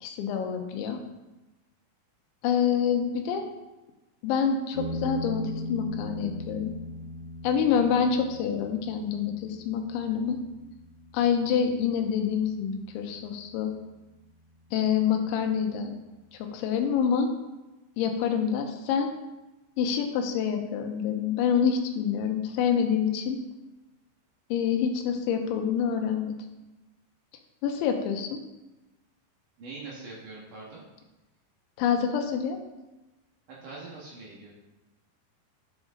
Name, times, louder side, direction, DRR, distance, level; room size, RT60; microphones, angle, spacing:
voice 1, 0.0-1.0 2.4-3.5 4.2-6.7 7.4-10.4 11.1-13.7 14.7-15.9 16.5-17.3 18.0-19.1 19.8-23.4 24.5-26.3 27.6-28.4 31.8-32.6, left 7 dB, 85° left, 4 dB, 3.3 m, -26 dB
sound 1, 4.7-13.8, left 1 dB, 60° left, 2.4 m, -39 dB
voice 2, 29.6-30.8 33.5-34.5, right 3 dB, 55° right, -5 dB, 2.6 m, -43 dB
12.0 x 6.2 x 3.8 m, 1.1 s
omnidirectional pair, 5.2 m